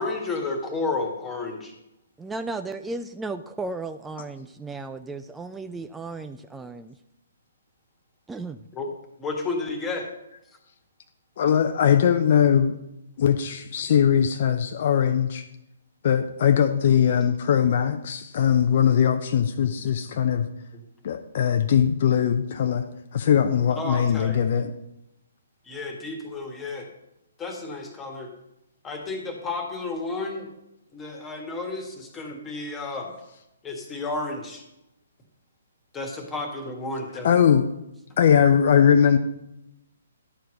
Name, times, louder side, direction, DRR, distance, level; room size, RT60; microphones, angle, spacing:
voice 1, 0.0-1.7 8.7-8.9 9.2-10.1 23.8-24.4 25.6-26.9 27.4-28.3 28.8-30.5 30.9-33.1 33.6-34.6 35.9-37.3, left 3 dB, 15° left, 3 dB, 1.7 m, -31 dB
voice 2, 2.2-7.0 8.3-8.6, right 3 dB, 5° right, 9 dB, 0.3 m, -35 dB
voice 3, 11.4-12.8 13.2-15.4 16.0-20.5 21.0-22.8 23.1-24.7 37.2-37.7 38.2-39.2, left 8 dB, 50° left, 6 dB, 0.6 m, -20 dB
11.5 x 4.7 x 6.1 m, 0.87 s
figure-of-eight pair, 130°, 0 cm